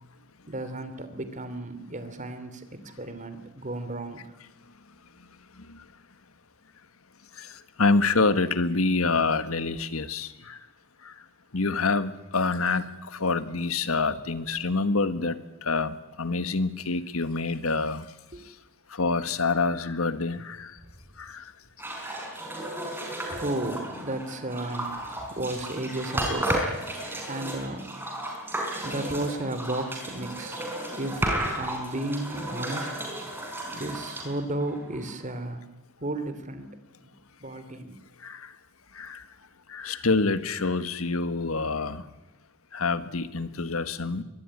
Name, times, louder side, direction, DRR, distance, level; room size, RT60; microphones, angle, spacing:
voice 1, 0.5-4.3 18.3-18.4 23.3-26.8 27.3-28.0 28.8-30.7 30.9-32.9 33.7-35.6 36.0-36.7 37.0-37.1 37.4-38.0, right 1 dB, 35° right, 10 dB, 3.0 m, -34 dB
voice 2, 7.8-10.6 11.0-11.1 11.5-18.0 18.9-20.7 21.2-21.4 38.2-38.5 38.9-39.2 39.7-42.0 42.7-44.2, left 3 dB, 85° left, 12 dB, 1.5 m, -27 dB
sound 1, 21.8-35.3, right 1 dB, 10° right, 5.7 m, -33 dB
23.0 x 21.0 x 9.8 m, 1.0 s
head